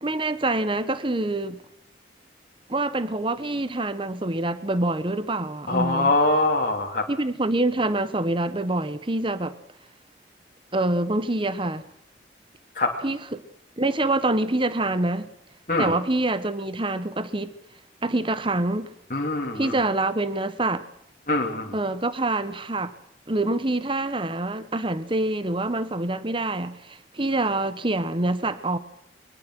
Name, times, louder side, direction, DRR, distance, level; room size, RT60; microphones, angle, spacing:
voice 1, 0.0-1.6 2.7-6.1 7.1-9.6 10.7-11.9 13.0-13.4 13.8-15.3 15.8-17.5 18.0-18.9 19.5-20.8 21.7-22.9 23.3-28.8, right 2 dB, 30° right, 1.2 m, -26 dB
voice 2, 5.7-7.1 12.7-13.0 15.7-15.9 19.1-19.8 21.3-21.7, left 2 dB, 45° left, 2.9 m, -23 dB
24.0 x 21.5 x 6.2 m
head